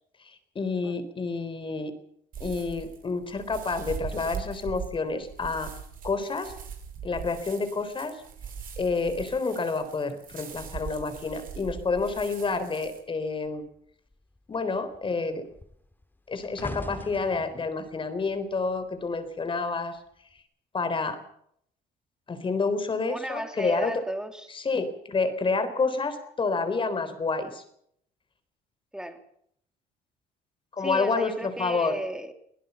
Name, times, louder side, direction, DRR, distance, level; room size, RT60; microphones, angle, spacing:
voice 1, 0.3-1.9 2.4-5.7 6.0-6.5 7.0-8.1 8.8-13.6 14.5-15.4 16.3-20.0 20.7-21.2 22.3-23.9 24.5-27.6 30.7-31.9, left 4 dB, 30° left, 10 dB, 3.8 m, -29 dB
sound 1, 2.3-13.0, right 6 dB, 55° right, 5.2 m, -41 dB
sound 2, 10.4-13.1 13.4-13.7 14.1-19.4 20.1-20.4, left 2 dB, 10° left, 2.8 m, -44 dB
voice 2, 23.0-24.5 28.9-29.2 30.8-32.3, right 1 dB, 5° right, 6 dB, 2.9 m, -34 dB
23.5 x 16.5 x 7.0 m, 0.70 s
cardioid pair, 110°, 17 cm